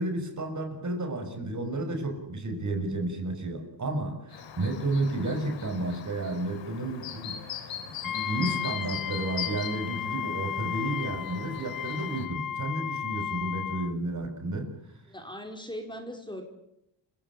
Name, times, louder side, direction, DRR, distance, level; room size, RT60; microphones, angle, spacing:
voice 1, 0.0-7.4 7.9-14.7, right 2 dB, 40° right, 6 dB, 6.1 m, -32 dB
Chirp tweet, 4.3-12.3, left 9 dB, 90° left, 3.4 m, -41 dB
Wind instrument woodwind instrument, 8.0-14.0, left 10 dB, 50° left, 0.9 m, -34 dB
voice 2, 15.1-16.4, equal, 10° left, 3 dB, 4.9 m, -39 dB
28.5 x 16.5 x 8.7 m, 0.81 s
cardioid pair, 90°, 43 cm